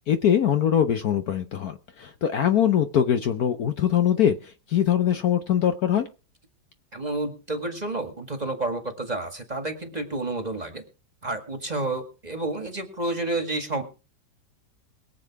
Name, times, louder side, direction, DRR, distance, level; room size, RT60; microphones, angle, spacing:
voice 1, 0.1-6.1, left 9 dB, 60° left, 8 dB, 1.2 m, -22 dB
voice 2, 6.9-10.8 11.2-13.8, right 2 dB, 20° right, 7 dB, 1.8 m, -30 dB
22.0 x 7.5 x 4.7 m, 0.33 s
omnidirectional pair, 2.0 m